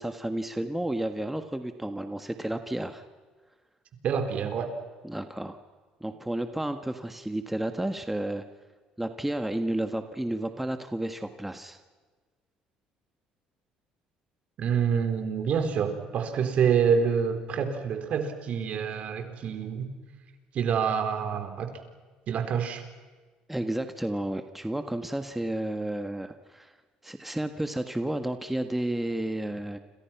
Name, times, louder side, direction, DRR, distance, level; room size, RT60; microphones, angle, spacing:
voice 1, 0.0-3.0 5.0-5.6 6.0-8.4 9.0-11.8 23.5-26.7 27.0-29.8, right 1 dB, 5° right, 8 dB, 1.6 m, -31 dB
voice 2, 4.0-4.7 14.6-19.9 20.5-21.7 22.3-22.8, right 7 dB, 55° right, 7 dB, 4.0 m, -27 dB
30.0 x 27.0 x 6.0 m, 1.4 s
supercardioid pair, 90°, 3 cm